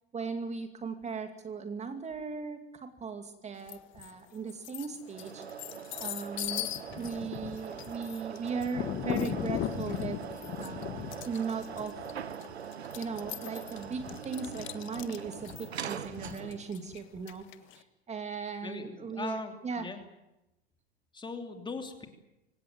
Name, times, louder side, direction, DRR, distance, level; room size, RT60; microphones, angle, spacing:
voice 1, 0.1-5.4 6.0-6.7 7.0-10.2 10.6-12.1 12.9-15.5 15.8-19.9, right 5 dB, 20° right, 7 dB, 2.4 m, -38 dB
sound 1, 3.7-4.1 4.5-17.8, left 12 dB, 35° left, 1.6 m, -38 dB
sound 2, 5.0-16.8, right 8 dB, 80° right, 1.3 m, -42 dB
voice 2, 18.6-20.0 21.1-22.1, left 3 dB, 15° left, 5 dB, 3.0 m, -40 dB
25.0 x 17.5 x 9.4 m, 0.96 s
figure-of-eight pair, 90°, 32 cm